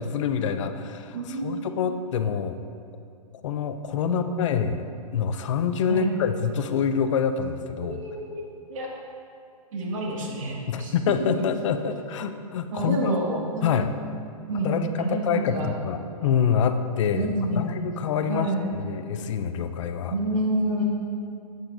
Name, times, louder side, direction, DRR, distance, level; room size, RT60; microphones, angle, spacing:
voice 1, 0.0-2.6 3.4-8.0 10.7-13.1 13.6-13.9 14.6-17.3 17.6-20.2, left 7 dB, 55° left, 9 dB, 0.5 m, -26 dB
voice 2, 1.1-1.7 4.0-4.6 5.9-6.2 7.8-8.4 8.7-8.9 9.7-10.9 11.2-11.4 12.7-14.0 14.5-15.7 17.1-17.9 18.3-18.7 20.1-20.8, right 1 dB, 60° right, -2 dB, 1.7 m, -28 dB
8.1 x 7.9 x 2.6 m, 2.5 s
hypercardioid pair, 135°, 19 cm